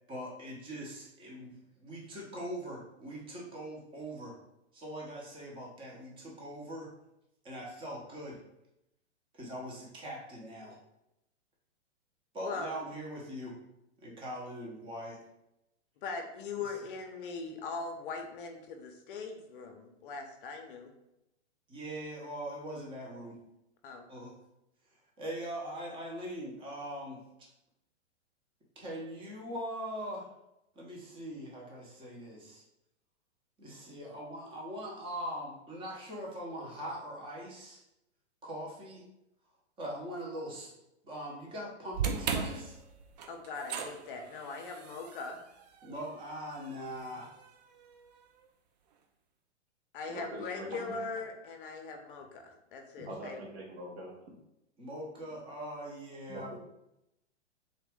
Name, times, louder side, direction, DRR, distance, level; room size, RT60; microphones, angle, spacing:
voice 1, 0.1-4.3 4.7-6.9 7.4-8.4 9.3-10.8 12.3-13.6 14.0-15.2 21.7-23.4 24.1-24.3 25.2-27.2 28.8-30.3 30.8-32.6 33.6-37.8 38.4-39.0 39.8-40.7 41.0-42.8 45.8-47.3 54.8-56.5, equal, 15° right, -3 dB, 0.8 m, -41 dB
voice 2, 12.4-12.7 16.0-20.9 23.8-24.0 43.3-45.4 49.9-53.5, left 4 dB, 45° left, 4 dB, 0.6 m, -40 dB
sound 1, 41.9-48.2, right 6 dB, 40° right, 0.4 m, -39 dB
voice 3, 50.1-51.0 53.0-54.2 56.3-56.6, right 1 dB, 65° right, -1 dB, 1.4 m, -43 dB
3.9 x 2.4 x 3.5 m, 0.86 s
hypercardioid pair, 130°, 36 cm